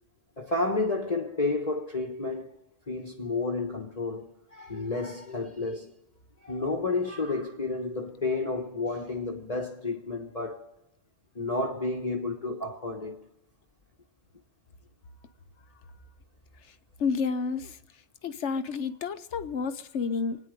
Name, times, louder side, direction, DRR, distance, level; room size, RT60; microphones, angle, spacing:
voice 1, 0.4-2.5 2.9-5.9 6.4-10.6 11.3-13.2, left 3 dB, 30° left, 1.3 m, -31 dB
voice 2, 17.0-17.8 18.2-20.4, left 5 dB, 65° left, 1.1 m, -30 dB
25.5 x 9.8 x 5.2 m
omnidirectional pair, 1.3 m